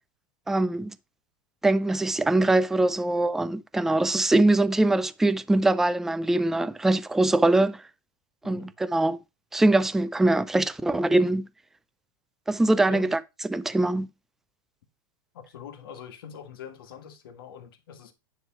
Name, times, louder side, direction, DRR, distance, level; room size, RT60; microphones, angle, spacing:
voice 1, 0.5-0.9 1.6-7.8 8.5-9.2 9.5-11.5 12.5-13.2 13.5-14.1, right 2 dB, 5° right, 0.3 m, -22 dB
voice 2, 15.3-18.1, left 7 dB, 80° left, 1.7 m, -43 dB
9.7 x 3.3 x 4.6 m
supercardioid pair, 135°, 12 cm